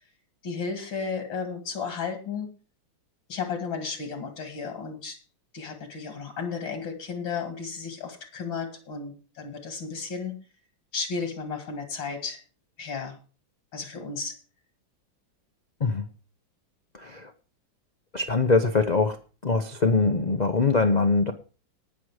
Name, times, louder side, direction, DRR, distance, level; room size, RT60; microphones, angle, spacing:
voice 1, 0.4-2.5 3.3-5.2 5.5-10.4 10.9-12.4 12.8-13.2 13.7-14.4, left 5 dB, 80° left, 7 dB, 2.9 m, -33 dB
voice 2, 16.9-17.3 18.1-19.2 19.4-21.3, left 3 dB, 65° left, 7 dB, 0.4 m, -23 dB
18.5 x 6.3 x 4.8 m, 0.35 s
omnidirectional pair, 2.1 m